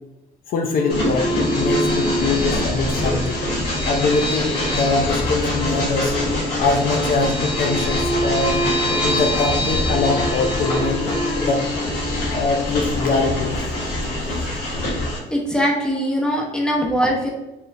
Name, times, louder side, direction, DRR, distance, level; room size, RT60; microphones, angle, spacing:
voice 1, 0.5-3.4 3.9-6.1 6.6-8.6 9.0-11.0 11.4-11.6 12.3-13.7, left 3 dB, 60° left, 3 dB, 0.6 m, -22 dB
sound 1, 0.8-14.0, equal, 25° left, 0.8 m, -27 dB
Train, 0.9-15.2, left 1 dB, 75° left, 1.5 m, -24 dB
voice 2, 15.3-17.3, equal, 5° left, -1 dB, 1.0 m, -21 dB
4.3 x 3.5 x 2.6 m, 0.96 s
cardioid pair, 110°, 17 cm